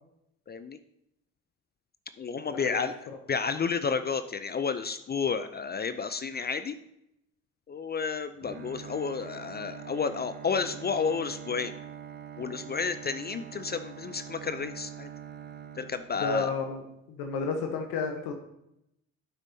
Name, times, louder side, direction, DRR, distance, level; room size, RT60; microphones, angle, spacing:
voice 1, 0.5-0.8 2.2-6.7 7.7-11.7 12.4-15.1 15.8-16.5, left 5 dB, 25° left, 11 dB, 0.4 m, -31 dB
Bowed string instrument, 8.4-16.6, right 8 dB, 25° right, 0.6 m, -44 dB
voice 2, 16.2-16.8 17.1-18.3, left 4 dB, 65° left, 4 dB, 1.0 m, -31 dB
11.5 x 6.1 x 2.7 m, 0.82 s
hypercardioid pair, 55°, 39 cm